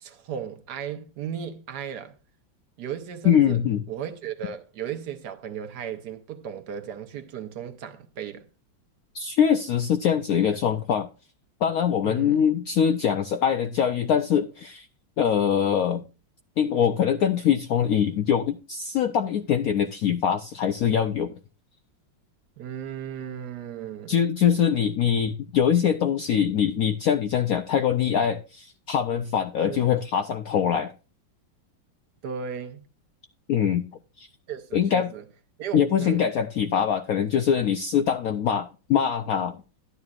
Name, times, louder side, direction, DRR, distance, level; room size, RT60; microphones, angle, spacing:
voice 1, 0.0-2.1 2.8-3.6 3.9-8.5 12.0-12.5 22.6-24.2 29.6-29.9 32.2-32.8 34.5-35.3 35.6-36.2, right 8 dB, 65° right, 1.3 m, -35 dB
voice 2, 3.2-3.8 9.1-11.1 11.6-14.9 15.2-16.0 16.6-21.3 24.1-30.9 33.5-33.8 34.2-34.3 34.7-35.1 35.7-39.6, left 8 dB, 75° left, 0.8 m, -23 dB
12.5 x 9.6 x 2.4 m
omnidirectional pair, 2.1 m